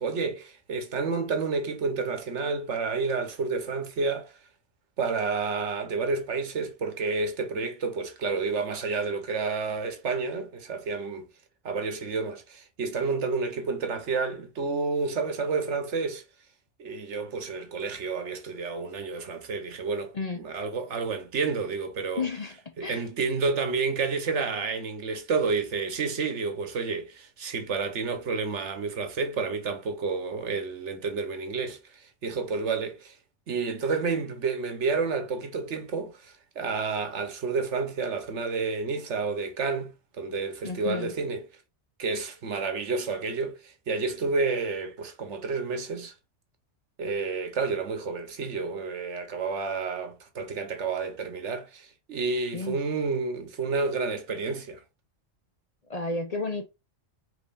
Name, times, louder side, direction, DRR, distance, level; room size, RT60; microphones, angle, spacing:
voice 1, 0.0-4.3 5.0-11.3 11.6-16.2 16.8-22.3 22.8-33.2 33.5-41.4 42.0-46.1 47.0-54.8, right 4 dB, 75° right, 1.3 m, -30 dB
voice 2, 20.1-20.5 22.2-23.1 40.6-41.1 52.5-52.8 55.9-56.7, left 3 dB, 40° left, 0.7 m, -32 dB
5.3 x 3.5 x 2.5 m
omnidirectional pair, 1.2 m